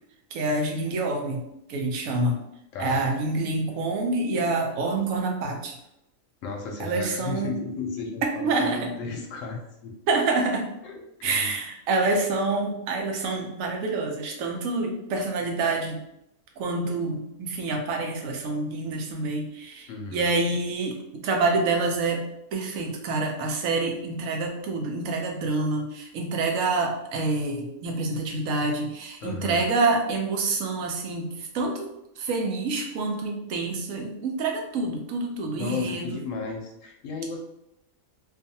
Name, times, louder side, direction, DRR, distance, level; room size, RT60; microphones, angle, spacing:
voice 1, 0.3-1.4 1.7-2.4 2.8-5.8 6.8-7.5 8.4-8.9 10.1-10.6 11.2-16.0 16.6-31.9 32.2-36.1, right 3 dB, 80° right, 2 dB, 1.0 m, -27 dB
voice 2, 2.7-3.1 6.4-10.3 10.8-11.6 19.9-20.3 29.2-29.7 35.5-37.4, left 4 dB, 70° left, 1 dB, 0.9 m, -34 dB
2.5 x 2.4 x 2.6 m, 0.82 s
omnidirectional pair, 1.4 m